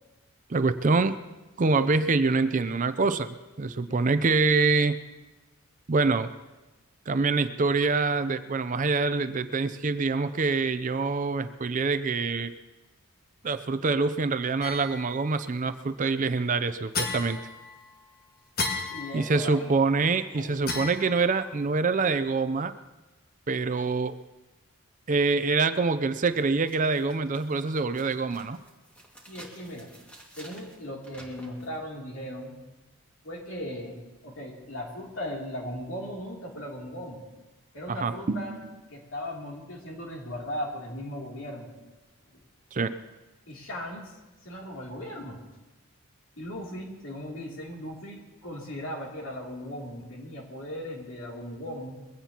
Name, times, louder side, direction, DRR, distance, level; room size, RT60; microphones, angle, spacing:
voice 1, 0.5-1.2 1.6-5.0 5.9-6.3 7.1-12.5 13.4-17.4 19.1-22.7 23.5-24.1 25.1-28.6 37.9-38.7 42.7-43.0, right 4 dB, 35° right, 11 dB, 0.5 m, -25 dB
sound 1, 14.6-15.3 16.9-18.0 18.6-19.7 20.7-21.6, left 3 dB, 45° left, 1.6 m, -34 dB
voice 2, 18.9-19.8 20.3-20.9 29.3-29.9 30.4-32.6 33.2-37.2 37.7-38.6 38.9-41.7 42.3-42.4 43.5-44.1 44.4-45.4 46.4-52.0, equal, 60° left, -1 dB, 2.9 m, -38 dB
sound 2, 26.3-31.8, right 1 dB, 5° left, 2.0 m, -52 dB
22.0 x 16.5 x 2.9 m, 1.1 s
head